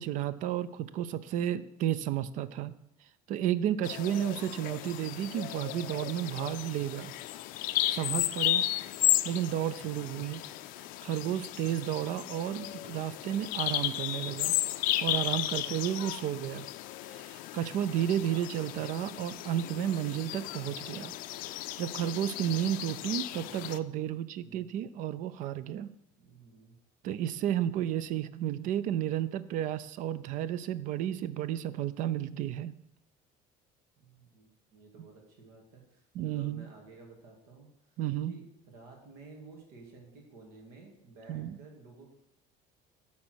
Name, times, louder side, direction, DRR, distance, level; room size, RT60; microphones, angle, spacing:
voice 1, 0.0-2.7 3.3-7.1 7.9-8.7 9.2-10.4 11.0-14.5 15.0-16.7 17.1-21.1 21.8-25.9 27.0-32.7 36.1-36.7 38.0-38.4 41.3-41.6, right 11 dB, 55° right, 16 dB, 0.5 m, -32 dB
Bird vocalization bird call bird song, 3.8-23.8, left 15 dB, 65° left, 0.4 m, -34 dB
voice 2, 26.2-26.8 34.0-38.0 38.3-42.1, right 3 dB, 75° right, 1 dB, 2.3 m, -53 dB
8.8 x 4.2 x 6.3 m, 0.79 s
cardioid pair, 150°, 16 cm